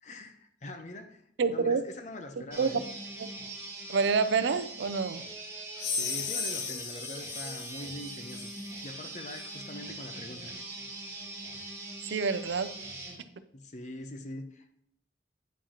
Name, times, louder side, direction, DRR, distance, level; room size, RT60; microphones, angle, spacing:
voice 1, 0.0-1.2 1.5-2.9 5.9-8.5 8.8-10.5 13.5-14.8, left 1 dB, 40° left, 6 dB, 0.6 m, -43 dB
voice 2, 1.4-1.8 2.6-2.7 3.2-3.3 3.9-5.3 12.1-12.7, right 5 dB, 75° right, 12 dB, 0.4 m, -27 dB
sound 1, 2.5-13.2, right 2 dB, 15° right, 1.6 m, -42 dB
sound 2, 5.8-8.8, left 5 dB, 80° left, 0.9 m, -36 dB
9.0 x 4.7 x 2.9 m, 0.71 s
head